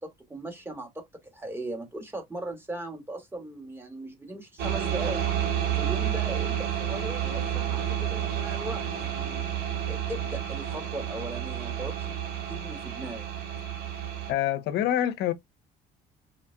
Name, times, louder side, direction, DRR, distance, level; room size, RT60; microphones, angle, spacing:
voice 1, 0.0-5.3 5.8-9.4 9.9-12.2 12.5-13.3, right 2 dB, 15° right, 2.6 m, -38 dB
sound 1, 4.6-14.3, right 10 dB, 80° right, 3.0 m, -30 dB
voice 2, 14.3-15.3, left 11 dB, 80° left, 0.9 m, -26 dB
5.1 x 4.3 x 2.3 m
cardioid pair, 110°, 17 cm